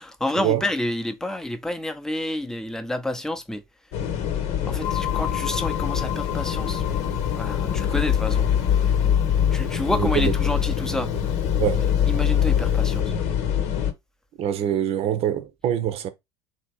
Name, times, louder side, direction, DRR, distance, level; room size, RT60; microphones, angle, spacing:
voice 1, 0.0-3.6 4.7-6.9 7.3-8.5 9.5-11.1 12.1-13.1, left 1 dB, 5° left, 0.8 m, -29 dB
sound 1, 3.9-13.9, left 9 dB, 55° left, 1.0 m, -23 dB
sound 2, 4.8-13.0, left 12 dB, 25° left, 0.4 m, -37 dB
voice 2, 9.9-10.3 11.6-11.9 14.4-16.1, right 10 dB, 45° right, 0.8 m, -24 dB
3.4 x 2.9 x 4.6 m
hypercardioid pair, 80°, 14 cm